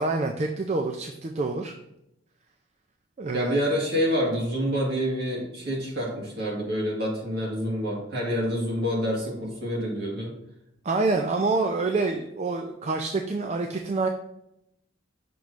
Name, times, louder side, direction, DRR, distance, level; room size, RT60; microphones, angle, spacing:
voice 1, 0.0-1.7 3.2-3.8 10.8-14.1, right 3 dB, 35° right, 4 dB, 0.4 m, -27 dB
voice 2, 3.3-10.3, equal, 55° right, -3 dB, 2.1 m, -27 dB
6.0 x 3.1 x 5.1 m, 0.82 s
head